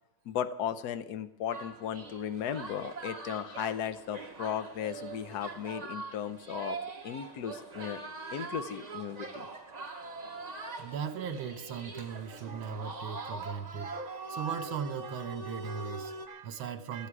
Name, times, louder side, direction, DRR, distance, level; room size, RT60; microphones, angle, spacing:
voice 1, 0.2-6.8 7.0-8.0 8.3-9.5, left 9 dB, 60° left, 12 dB, 1.2 m, -36 dB
sound 1, 1.5-16.3, right 3 dB, 25° right, 1.1 m, -42 dB
voice 2, 10.7-17.1, right 7 dB, 75° right, 10 dB, 1.8 m, -38 dB
17.5 x 13.5 x 4.8 m, 0.89 s
omnidirectional pair, 2.3 m